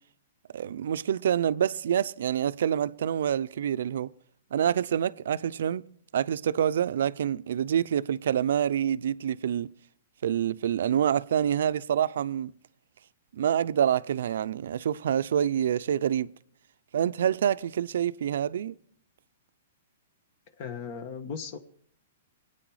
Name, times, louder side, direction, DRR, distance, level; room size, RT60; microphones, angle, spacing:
voice 1, 0.5-4.1 4.5-5.9 6.1-9.7 10.2-12.5 13.3-16.3 16.9-18.7, right 9 dB, 75° right, 0.5 m, -27 dB
voice 2, 20.6-21.6, left 6 dB, 45° left, 1.3 m, -37 dB
23.0 x 9.0 x 4.8 m
hypercardioid pair, 150°, 0 cm